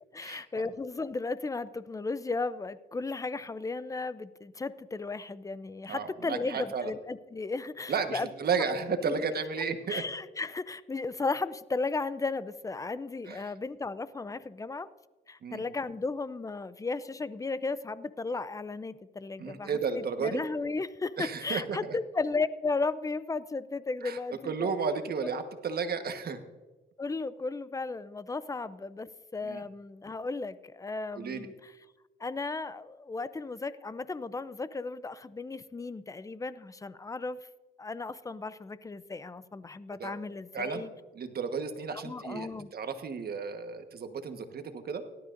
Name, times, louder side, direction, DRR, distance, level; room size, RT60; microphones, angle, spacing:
voice 1, 0.1-8.3 9.1-9.2 9.9-14.9 15.3-24.7 27.0-31.7 32.2-37.4 37.8-40.9 41.9-42.7, left 3 dB, 15° left, 16 dB, 0.5 m, -35 dB
voice 2, 5.9-6.9 7.9-10.0 13.3-13.4 15.4-15.6 19.4-20.4 21.2-22.0 24.0-24.2 24.4-26.4 29.4-29.6 31.1-31.5 40.0-40.2 40.5-40.9 41.1-45.0, right 5 dB, 50° right, 7 dB, 1.4 m, -33 dB
18.0 x 12.5 x 2.6 m, 1.2 s
cardioid pair, 90°, 20 cm